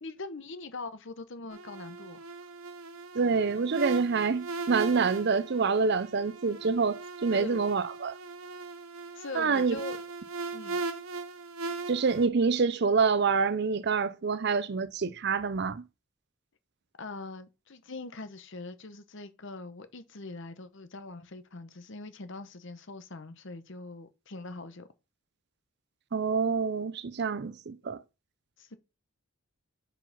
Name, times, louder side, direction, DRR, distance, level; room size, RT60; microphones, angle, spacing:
voice 1, 0.0-2.2 7.3-7.6 9.1-10.0 10.5-10.8 17.0-24.9 28.6-28.8, left 3 dB, 55° left, 0.9 m, -42 dB
sound 1, 1.5-12.3, right 3 dB, 70° right, 0.9 m, -39 dB
voice 2, 3.1-8.2 9.3-9.8 11.9-15.8 26.1-28.0, right 5 dB, 50° right, 0.5 m, -27 dB
5.5 x 4.9 x 5.8 m
head